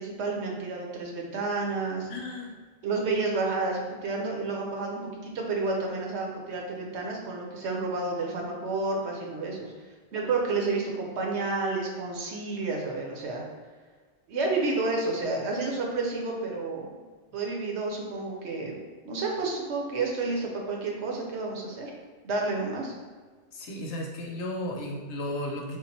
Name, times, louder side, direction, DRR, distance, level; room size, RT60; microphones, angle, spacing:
voice 1, 0.0-2.1 2.8-9.7 10.1-13.4 14.3-16.9 17.3-18.8 19.0-21.9 22.2-22.9, right 3 dB, 70° right, 0 dB, 1.0 m, -30 dB
voice 2, 2.1-2.6 23.5-25.8, left 1 dB, 75° left, 0 dB, 1.0 m, -34 dB
3.8 x 2.1 x 4.0 m, 1.5 s
omnidirectional pair, 1.2 m